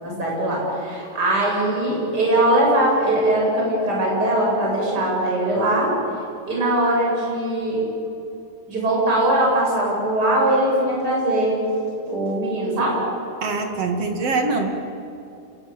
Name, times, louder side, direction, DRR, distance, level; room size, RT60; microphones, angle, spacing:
voice 1, 0.0-5.9 6.5-7.8 8.7-11.6 12.1-13.0, right 1 dB, 20° right, -3 dB, 8.1 m, -21 dB
voice 2, 13.4-14.7, right 3 dB, 45° right, 4 dB, 2.8 m, -23 dB
29.5 x 21.5 x 8.8 m, 2.7 s
omnidirectional pair, 4.7 m